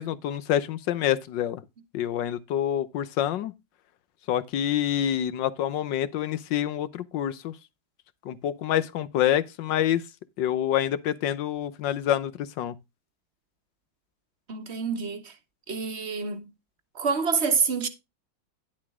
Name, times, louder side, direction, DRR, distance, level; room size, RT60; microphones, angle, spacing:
voice 1, 0.0-1.6 1.9-3.5 4.3-7.5 8.2-10.0 10.4-12.7, left 11 dB, 75° left, 1.5 m, -27 dB
voice 2, 14.5-15.3 15.7-16.5 16.9-17.9, right 5 dB, 40° right, 1.3 m, -27 dB
11.0 x 7.2 x 3.6 m
omnidirectional pair, 2.1 m